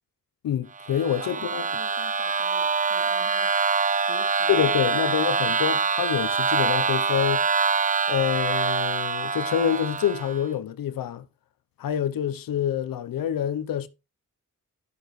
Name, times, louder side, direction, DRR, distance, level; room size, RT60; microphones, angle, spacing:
voice 1, 0.4-1.7 4.5-7.5 8.1-11.3 11.8-13.9, left 9 dB, 90° left, 0.8 m, -26 dB
sound 1, 0.8-10.5, right 5 dB, 25° right, 0.4 m, -25 dB
voice 2, 1.2-3.8 4.1-5.6, right 3 dB, 45° right, 2.4 m, -46 dB
11.5 x 6.7 x 3.1 m
cardioid pair, 70°, 33 cm